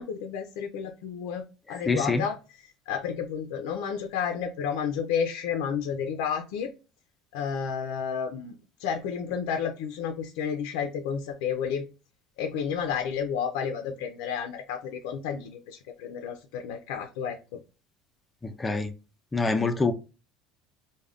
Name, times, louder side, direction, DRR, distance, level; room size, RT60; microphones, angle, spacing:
voice 1, 0.0-6.7 7.3-11.8 12.4-17.6, left 7 dB, 85° left, 5 dB, 0.4 m, -31 dB
voice 2, 1.9-2.2 18.4-18.9 19.3-19.9, left 3 dB, 15° left, 9 dB, 0.3 m, -25 dB
2.4 x 2.1 x 3.3 m, 0.31 s
cardioid pair, 130°, 0 cm